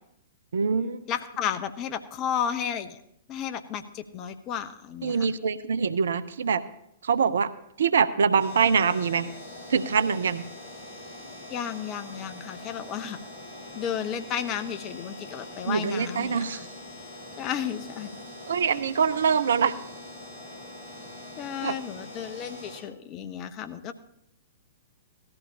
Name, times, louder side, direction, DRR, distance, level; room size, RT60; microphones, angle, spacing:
voice 1, 0.5-1.0 5.0-6.6 7.0-7.5 7.8-9.3 9.7-10.5 15.6-16.7 18.5-19.7 21.6-21.8, right 6 dB, 65° right, 15 dB, 0.6 m, -24 dB
voice 2, 1.1-3.0 3.3-5.3 11.5-13.2 13.7-16.7 17.4-18.1 21.4-23.9, left 9 dB, 30° left, 9 dB, 0.8 m, -33 dB
sound 1, 8.4-22.8, left 1 dB, 55° left, 4.5 m, -43 dB
18.0 x 13.5 x 2.8 m, 0.76 s
figure-of-eight pair, 110°, 0 cm